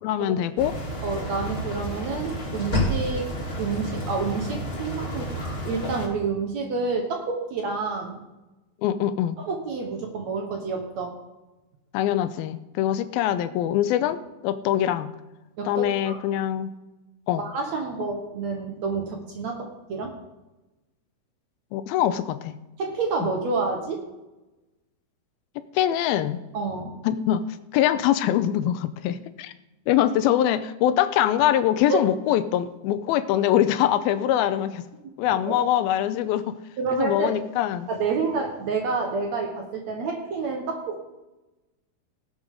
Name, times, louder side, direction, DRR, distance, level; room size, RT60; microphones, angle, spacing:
voice 1, 0.0-0.8 8.8-9.4 11.9-15.1 15.7-16.7 17.3-17.4 18.0-18.1 21.7-22.6 23.2-23.3 25.7-26.4 27.0-27.4 27.7-29.5 29.9-34.8 35.2-36.6 36.9-37.9, left 11 dB, 85° left, 12 dB, 2.4 m, -23 dB
sound 1, 0.6-6.1, equal, 20° left, 1.6 m, -30 dB
voice 2, 1.0-3.3 3.6-5.3 5.6-8.2 9.4-11.1 15.6-16.2 17.4-20.1 22.8-24.0 26.5-27.0 31.9-32.0 35.5-35.6 36.8-37.4 37.9-41.0, right 4 dB, 60° right, 2 dB, 2.0 m, -28 dB
18.0 x 8.0 x 3.7 m, 1.0 s
omnidirectional pair, 4.5 m